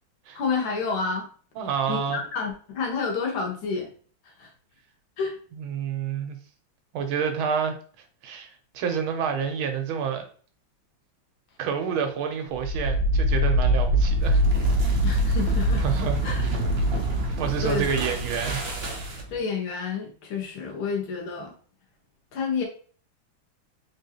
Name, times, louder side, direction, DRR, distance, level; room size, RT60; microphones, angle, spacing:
voice 1, 0.4-1.3 1.9-3.9 4.4-4.5 5.2-5.4 15.0-15.8 16.2-16.5 17.6-18.1 19.3-21.5 22.3-22.6, left 5 dB, 85° left, 1.7 m, -29 dB
voice 2, 1.6-2.2 5.6-6.4 6.9-7.7 8.2-8.5 8.7-10.3 11.6-14.4 14.8-14.9 15.8-16.6 17.4-18.7 19.0-19.2, right 7 dB, 85° right, 1.6 m, -28 dB
sound 1, 12.5-19.4, right 1 dB, 65° right, 0.6 m, -24 dB
3.7 x 3.7 x 2.8 m
omnidirectional pair, 2.2 m